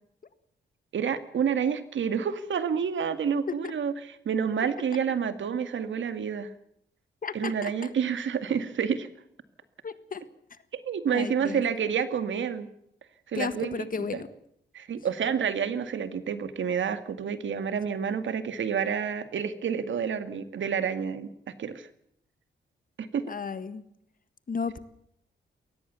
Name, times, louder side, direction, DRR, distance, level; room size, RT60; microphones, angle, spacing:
voice 1, 0.9-3.9 4.3-6.5 7.3-9.1 10.7-12.7 13.3-14.2 14.7-21.3 21.6-21.9 23.0-23.2, right 7 dB, 75° right, 11 dB, 2.1 m, -29 dB
voice 2, 7.2-7.9 9.8-10.2 10.5-10.6 11.1-11.6 13.3-14.3 23.3-23.8 24.5-24.8, left 5 dB, 45° left, 13 dB, 1.8 m, -34 dB
22.5 x 19.0 x 7.0 m, 0.73 s
wide cardioid pair, 115°, 19 cm